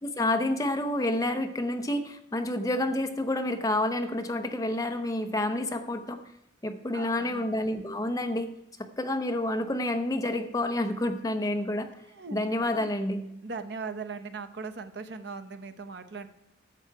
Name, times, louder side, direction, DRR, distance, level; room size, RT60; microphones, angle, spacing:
voice 1, 0.0-6.2 6.6-8.5 9.0-11.9 12.3-13.3, left 1 dB, 20° left, 7 dB, 0.7 m, -29 dB
voice 2, 6.9-7.4 12.2-12.4 13.4-16.3, right 4 dB, 60° right, 8 dB, 0.7 m, -39 dB
11.0 x 7.1 x 4.7 m, 0.89 s
head